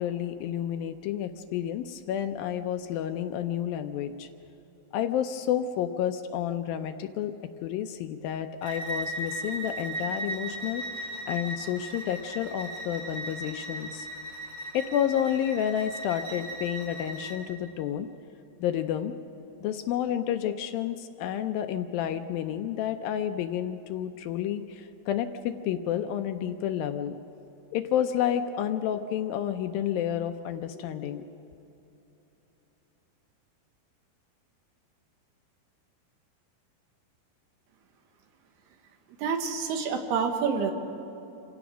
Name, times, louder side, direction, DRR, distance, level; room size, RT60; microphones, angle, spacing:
voice 1, 0.0-4.3 4.9-7.3 7.6-14.1 14.7-18.1 18.6-19.1 19.6-27.2 27.7-31.3, left 10 dB, 80° left, 8 dB, 2.2 m, -30 dB
Bowed string instrument, 8.6-17.4, right 1 dB, 25° right, 3.4 m, -37 dB
voice 2, 39.2-40.7, right 6 dB, 85° right, 4 dB, 3.5 m, -27 dB
27.0 x 16.5 x 6.2 m, 3.0 s
omnidirectional pair, 4.6 m